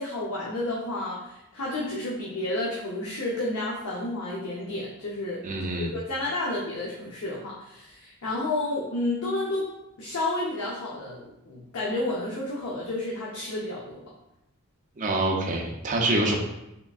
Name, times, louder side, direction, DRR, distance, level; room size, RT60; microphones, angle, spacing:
voice 1, 0.0-5.4 5.7-9.7 10.0-14.0, left 2 dB, 90° left, -5 dB, 0.7 m, -31 dB
voice 2, 5.4-5.9 15.0-16.4, right 2 dB, 35° right, 0 dB, 0.6 m, -26 dB
3.7 x 3.5 x 2.4 m, 0.88 s
head